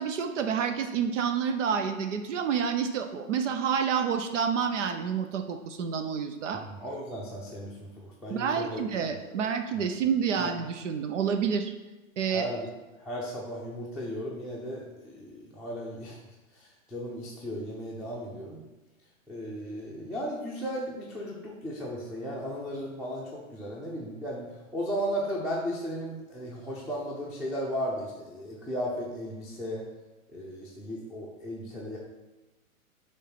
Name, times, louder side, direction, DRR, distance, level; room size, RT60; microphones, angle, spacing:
voice 1, 0.0-6.6 8.3-11.7 12.2-12.5, right 7 dB, 60° right, 7 dB, 0.8 m, -28 dB
voice 2, 6.5-8.8 9.3-9.4 10.4-10.5 12.3-12.7 13.0-16.2 16.5-18.7 19.3-29.8 30.3-32.0, equal, ahead, -6 dB, 0.6 m, -35 dB
6.4 x 3.2 x 5.9 m, 1.1 s
hypercardioid pair, 125°, 42 cm